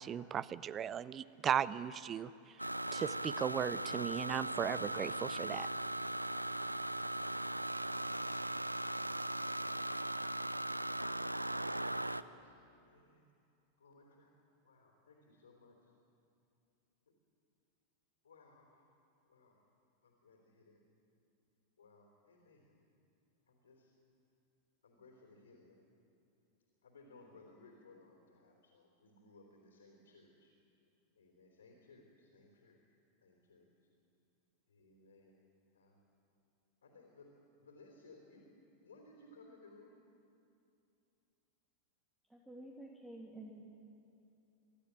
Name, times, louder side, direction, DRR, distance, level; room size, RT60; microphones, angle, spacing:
voice 1, 0.0-2.3 2.9-5.7, right 9 dB, 25° right, 19 dB, 0.5 m, -36 dB
sound 1, 2.6-12.2, right 1 dB, 85° right, 0.4 m, -38 dB
voice 2, 11.6-13.3 13.8-15.9 18.2-18.9 19.3-19.6 20.0-20.8 21.8-22.7 23.5-23.9 24.8-25.8 26.8-30.5 31.2-32.8 33.2-33.7 34.7-35.4 35.7-36.0 36.8-37.3 37.6-38.4 38.8-40.0, left 3 dB, 70° left, 0 dB, 3.6 m, -61 dB
voice 3, 42.3-43.6, right 1 dB, 5° right, -2 dB, 2.3 m, -50 dB
25.0 x 13.0 x 9.1 m, 2.6 s
figure-of-eight pair, 90°, 0 cm